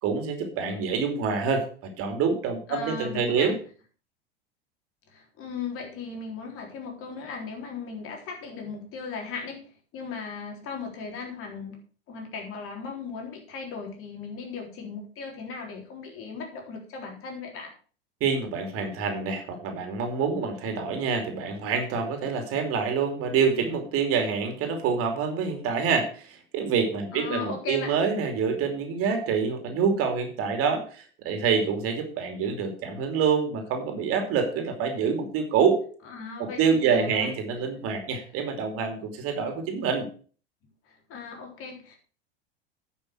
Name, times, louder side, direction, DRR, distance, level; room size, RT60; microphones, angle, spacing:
voice 1, 0.0-3.5 18.2-35.8 36.4-40.1, right 6 dB, 45° right, 5 dB, 2.8 m, -26 dB
voice 2, 2.7-3.6 5.1-11.8 12.1-17.7 27.1-27.9 36.0-37.3 40.9-42.0, left 5 dB, 45° left, 2 dB, 3.8 m, -37 dB
10.0 x 6.3 x 6.1 m, 0.42 s
hypercardioid pair, 85°, 30 cm